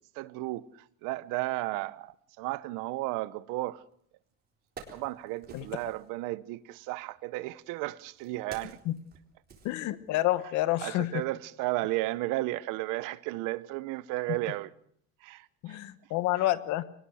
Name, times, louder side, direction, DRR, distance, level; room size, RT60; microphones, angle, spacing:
voice 1, 0.2-0.6 1.0-3.8 4.9-8.8 10.8-14.7 15.2-15.8, right 19 dB, 80° right, 1.0 m, -34 dB
Wood, 3.9-4.0 4.4-6.1 7.1-10.4 10.7-10.9, right 5 dB, 30° right, 4.0 m, -51 dB
voice 2, 9.6-11.2 15.6-16.8, left 15 dB, 65° left, 1.2 m, -29 dB
23.5 x 19.0 x 6.4 m
cardioid pair, 155°, 31 cm